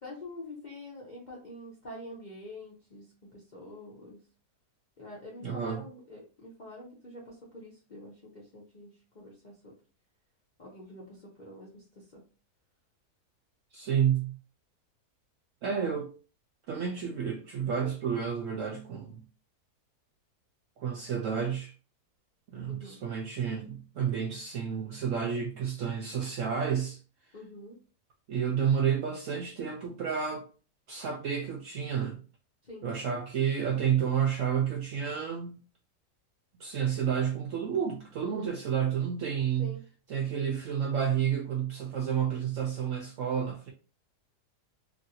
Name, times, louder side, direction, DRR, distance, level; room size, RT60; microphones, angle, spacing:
voice 1, 0.0-4.2 5.0-9.7 10.6-12.2 22.7-23.0 27.3-27.8 32.6-32.9 38.2-38.5 39.6-39.8, left 1 dB, 55° left, 0.5 m, -46 dB
voice 2, 5.4-5.8 13.7-14.3 15.6-16.1 16.7-19.2 20.8-21.7 22.5-27.0 28.3-30.4 30.9-32.2 32.8-35.6 36.6-39.7 40.1-43.7, right 8 dB, 70° right, 0.7 m, -30 dB
3.0 x 2.6 x 2.7 m
omnidirectional pair, 1.8 m